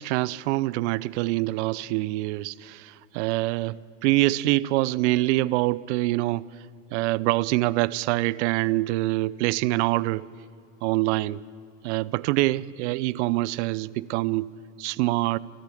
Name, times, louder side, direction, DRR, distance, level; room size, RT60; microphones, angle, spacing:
voice 1, 0.0-6.5 6.9-10.3 10.8-11.4 11.8-14.5 14.8-15.4, right 19 dB, 60° right, 21 dB, 0.7 m, -25 dB
20.0 x 14.0 x 9.9 m, 2.4 s
hypercardioid pair, 90°, 40 cm